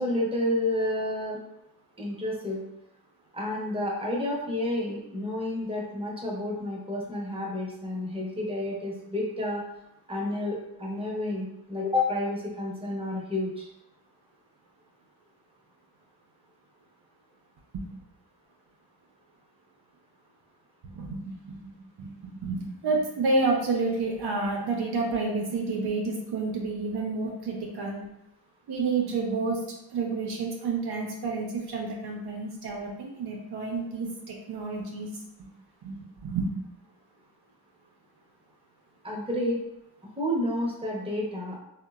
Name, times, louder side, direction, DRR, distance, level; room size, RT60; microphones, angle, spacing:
voice 1, 0.0-1.4 2.0-2.6 3.3-9.6 10.1-13.7 39.0-39.6 40.2-41.6, left 1 dB, 15° right, -3 dB, 0.8 m, -30 dB
voice 2, 20.8-21.7 22.0-28.0 28.7-29.6 29.9-35.1 35.8-36.5, right 3 dB, 65° right, -1 dB, 0.6 m, -30 dB
2.8 x 2.1 x 2.3 m, 0.85 s
cardioid pair, 50°, 41 cm